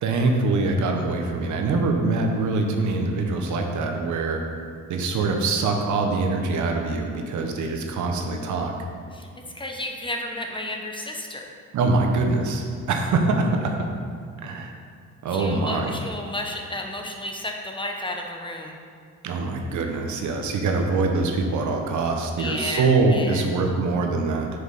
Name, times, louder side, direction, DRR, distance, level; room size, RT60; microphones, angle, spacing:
voice 1, 0.0-4.4 4.9-8.7 11.7-13.7 14.4-14.7 15.2-15.9 19.2-24.5, right 3 dB, 75° right, 3 dB, 1.0 m, -24 dB
voice 2, 9.5-11.5 15.3-18.7 22.3-23.4, left 1 dB, 15° left, 1 dB, 0.9 m, -32 dB
6.4 x 4.8 x 5.5 m, 2.1 s
cardioid pair, 90°, 30 cm